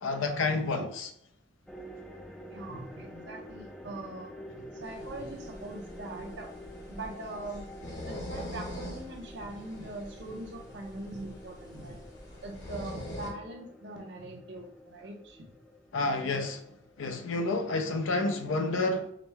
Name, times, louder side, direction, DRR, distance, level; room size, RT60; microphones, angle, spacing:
voice 1, 0.0-0.8 15.9-16.6 17.0-19.1, left 3 dB, 80° left, 0.6 m, -29 dB
sound 1, 1.7-18.2, equal, 5° left, 0.4 m, -48 dB
voice 2, 2.5-6.5 6.9-12.0 12.4-15.5, right 2 dB, 60° right, 0.8 m, -42 dB
sound 2, 4.8-13.3, left 1 dB, 60° left, 1.2 m, -44 dB
4.9 x 2.1 x 3.3 m
head